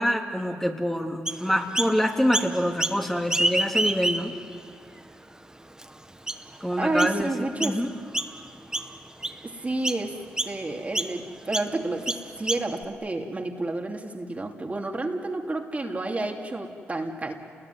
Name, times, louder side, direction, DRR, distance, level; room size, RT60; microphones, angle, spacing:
voice 1, 0.0-4.3 6.6-7.3 7.6-7.9, equal, 5° left, 1 dB, 2.8 m, -26 dB
Chirp tweet, 1.3-1.9 2.3-3.0 3.3-4.5 5.0-5.1 5.8-5.9 6.3-6.6 7.0-7.2 7.6-7.8 8.1-8.5 8.7-9.4 9.8-10.0 10.4-10.5 10.9-11.1 11.5-11.7 12.1-12.8, right 1 dB, 15° right, 1.5 m, -27 dB
voice 2, 6.8-7.8 9.4-10.2 10.4-17.4, right 2 dB, 30° right, 1 dB, 3.0 m, -30 dB
29.0 x 20.0 x 9.5 m, 2.2 s
cardioid pair, 60°, 5 cm